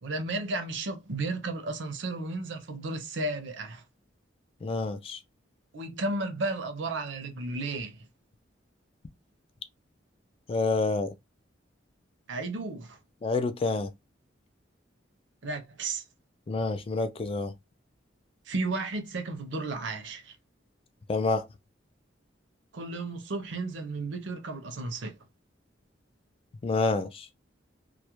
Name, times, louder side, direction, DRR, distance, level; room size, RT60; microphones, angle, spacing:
voice 1, 0.0-3.8 5.7-8.0 12.3-13.0 15.4-16.0 18.5-20.4 22.7-25.2, right 2 dB, 70° right, 0.6 m, -33 dB
voice 2, 4.6-5.2 10.5-11.1 13.2-13.9 16.5-17.5 21.1-21.5 26.6-27.3, left 3 dB, 30° left, 0.3 m, -28 dB
2.2 x 2.1 x 2.9 m
head